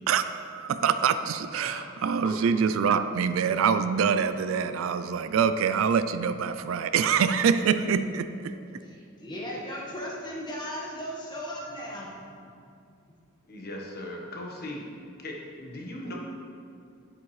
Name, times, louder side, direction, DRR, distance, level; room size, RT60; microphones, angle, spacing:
voice 1, 0.1-8.5, right 6 dB, 70° right, 11 dB, 0.3 m, -25 dB
voice 2, 1.6-2.2 13.5-14.9 15.2-16.1, left 1 dB, 50° left, -1 dB, 1.2 m, -39 dB
voice 3, 8.5-12.5, equal, 20° left, -4 dB, 1.5 m, -37 dB
10.0 x 8.0 x 3.2 m, 2.4 s
head